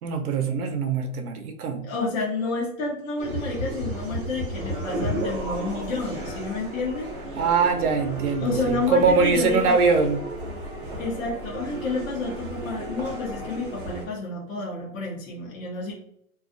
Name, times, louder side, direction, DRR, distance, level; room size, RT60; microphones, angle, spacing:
voice 1, 0.0-1.8 7.4-10.2, right 5 dB, 80° right, 5 dB, 0.6 m, -22 dB
voice 2, 1.8-7.1 8.4-9.8 11.0-15.9, left 3 dB, 60° left, -4 dB, 0.8 m, -29 dB
sound 1, 3.2-14.1, right 1 dB, 35° right, 0.6 m, -33 dB
2.4 x 2.3 x 2.5 m, 0.73 s
hypercardioid pair, 180°, 44 cm